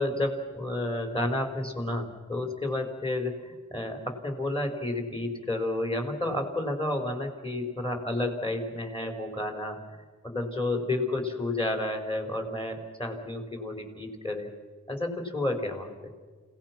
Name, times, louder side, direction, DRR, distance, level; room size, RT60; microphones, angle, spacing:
voice 1, 0.0-9.8 10.2-14.5 14.9-16.1, left 2 dB, 15° left, 3 dB, 4.3 m, -31 dB
29.5 x 17.5 x 6.0 m, 1.4 s
wide cardioid pair, 45°, 32 cm